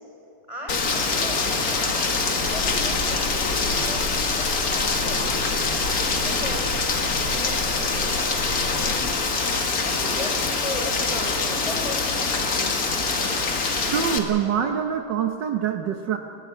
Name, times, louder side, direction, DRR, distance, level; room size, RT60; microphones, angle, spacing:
voice 1, 0.5-5.2 5.9-8.4 8.6-10.3 10.6-12.5, left 1 dB, 15° left, -1 dB, 5.4 m, -37 dB
Rain, 0.7-14.2, left 4 dB, 50° left, 2.1 m, -24 dB
sound 1, 2.5-8.9, left 1 dB, 75° left, 3.8 m, -34 dB
voice 2, 13.8-16.2, right 8 dB, 65° right, 6 dB, 1.5 m, -25 dB
30.0 x 12.5 x 9.4 m, 2.9 s
omnidirectional pair, 2.1 m